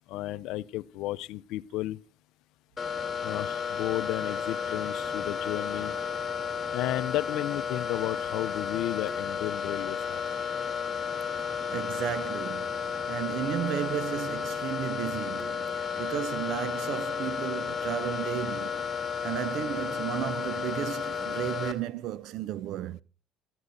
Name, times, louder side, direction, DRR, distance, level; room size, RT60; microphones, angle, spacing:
voice 1, 0.1-2.0 3.2-5.9 6.7-10.3, left 15 dB, 75° left, 0.5 m, -33 dB
sound 1, 2.8-21.7, left 6 dB, 25° left, 3.3 m, -33 dB
voice 2, 11.5-18.9 19.2-23.0, right 11 dB, 65° right, 0.6 m, -34 dB
18.5 x 14.0 x 2.6 m
supercardioid pair, 90°, 0 cm